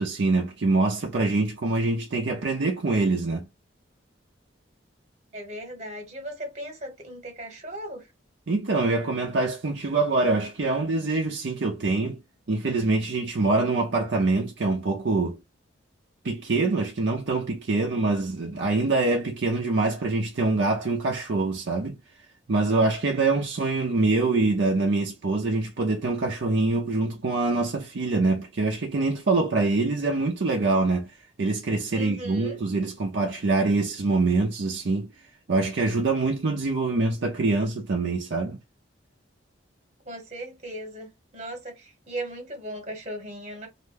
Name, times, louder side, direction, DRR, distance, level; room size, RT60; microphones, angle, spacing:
voice 1, 0.0-3.5 8.5-12.2 12.5-15.4 16.2-22.0 22.5-31.1 31.4-35.1 35.5-38.6, right 3 dB, 65° right, 0.5 m, -24 dB
voice 2, 5.3-8.0 31.9-32.6 40.1-41.1 41.3-43.7, right 1 dB, 35° right, 1.1 m, -37 dB
2.5 x 2.2 x 3.2 m
head